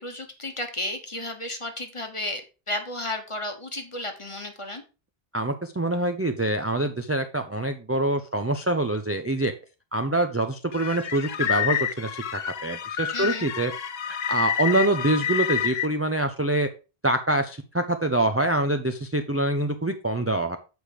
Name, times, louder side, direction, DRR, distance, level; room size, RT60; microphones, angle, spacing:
voice 1, 0.0-2.4 2.7-4.8 13.1-13.5, left 1 dB, 30° left, 5 dB, 1.3 m, -33 dB
voice 2, 5.3-9.5 9.9-13.7 14.0-16.7 17.0-20.6, right 1 dB, 15° right, 6 dB, 0.5 m, -25 dB
sound 1, 10.7-15.9, left 9 dB, 70° left, 1.0 m, -28 dB
7.8 x 5.0 x 5.0 m, 0.31 s
omnidirectional pair, 1.1 m